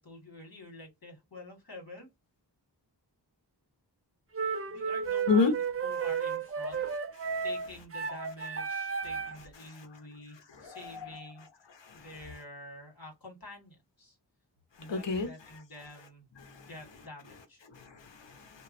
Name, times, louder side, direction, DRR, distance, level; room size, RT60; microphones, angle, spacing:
voice 1, 0.0-2.1 4.7-6.8 7.4-11.5 11.9-14.2 14.8-16.3 16.7-17.6, left 2 dB, 55° left, 1.7 m, -48 dB
sound 1, 4.3-9.5, right 6 dB, 35° right, 0.4 m, -33 dB
voice 2, 10.5-11.5 11.7-12.1 14.8-15.6 16.4-16.7 17.7-18.6, left 4 dB, 90° left, 0.7 m, -32 dB
2.9 x 2.2 x 2.5 m
wide cardioid pair, 55°, 42 cm